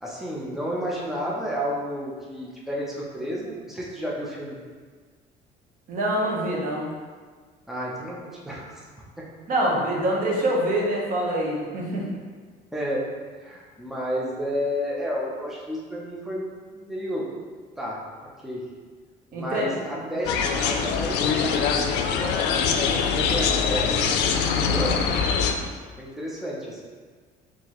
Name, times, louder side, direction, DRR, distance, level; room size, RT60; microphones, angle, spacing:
voice 1, 0.0-4.6 7.7-8.8 9.2-9.3 9.8-9.9 12.7-13.1 13.4-17.3 17.8-18.0 18.4-18.7 19.3-25.0 25.3-25.7 26.0-26.9, equal, ahead, -4 dB, 0.6 m, -32 dB
voice 2, 5.9-6.9 9.5-12.1 19.3-19.7, right 1 dB, 55° right, -2 dB, 1.0 m, -25 dB
sound 1, 20.2-25.5, left 6 dB, 85° left, 0.4 m, -23 dB
4.4 x 2.9 x 3.0 m, 1.5 s
cardioid pair, 135°, 17 cm